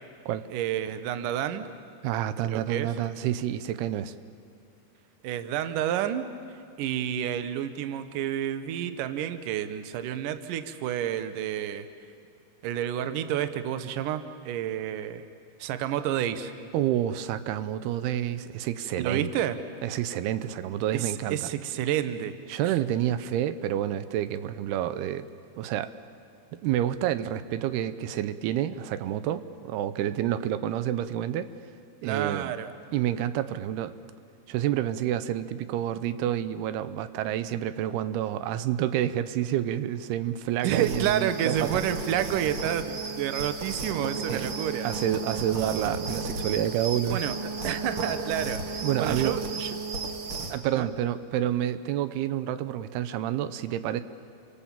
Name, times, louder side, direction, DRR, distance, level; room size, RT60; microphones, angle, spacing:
voice 1, 0.5-1.7 2.4-2.9 5.2-6.3 6.8-11.9 12.6-15.2 15.6-16.5 19.0-19.6 20.9-22.3 22.7-22.8 32.0-32.7 40.6-44.9 47.1-47.4 47.6-49.7 50.7-50.9, right 10 dB, 70° right, 10 dB, 2.4 m, -30 dB
voice 2, 2.0-4.1 16.7-19.3 19.8-21.5 22.5-25.3 25.6-25.9 26.6-31.5 32.0-32.5 32.9-33.9 34.5-41.8 44.3-44.5 44.8-47.2 48.8-49.4 50.5-54.0, right 11 dB, 90° right, 13 dB, 2.8 m, -29 dB
sound 1, 40.6-50.6, right 3 dB, 50° right, 1.8 m, -34 dB
29.0 x 24.5 x 7.4 m, 2.5 s
omnidirectional pair, 4.5 m